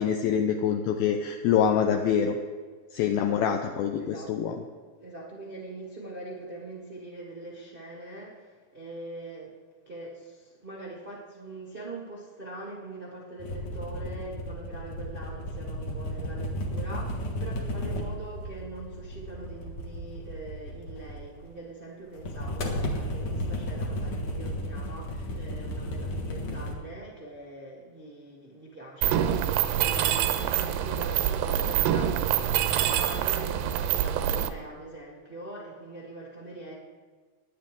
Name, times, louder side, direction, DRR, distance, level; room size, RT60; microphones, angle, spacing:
voice 1, 0.0-2.4 2.9-4.5, left 8 dB, 80° left, 4 dB, 2.3 m, -25 dB
voice 2, 3.1-3.5 4.0-4.3 5.0-9.5 9.8-36.7, right 2 dB, 65° right, -4 dB, 0.5 m, -42 dB
sound 1, 13.4-21.5 22.1-26.7, equal, 55° left, 2.2 m, -34 dB
Mechanisms, 29.0-34.5, right 10 dB, 85° right, 2.7 m, -26 dB
18.5 x 10.5 x 3.8 m, 1.5 s
omnidirectional pair, 4.8 m